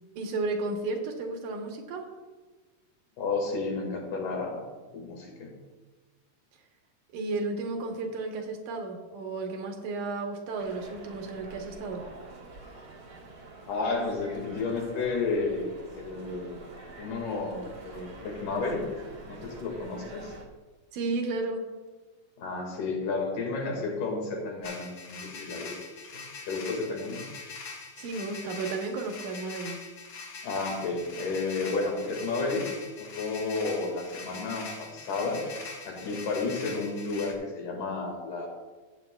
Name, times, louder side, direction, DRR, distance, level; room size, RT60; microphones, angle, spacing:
voice 1, 0.2-2.1 7.1-12.1 20.9-21.7 28.0-29.8, right 3 dB, 75° right, 3 dB, 2.4 m, -33 dB
voice 2, 3.2-5.5 13.7-15.7 15.9-16.6 17.0-18.8 19.3-20.3 22.4-25.8 26.1-26.2 26.5-27.2 30.4-32.7 33.0-35.4 35.9-38.5, left 3 dB, 80° left, 0 dB, 3.4 m, -32 dB
sound 1, 10.6-20.4, right 3 dB, 50° right, 1.2 m, -47 dB
sound 2, 24.6-37.3, left 4 dB, 60° left, 1.6 m, -43 dB
14.5 x 8.9 x 2.3 m, 1.3 s
omnidirectional pair, 3.6 m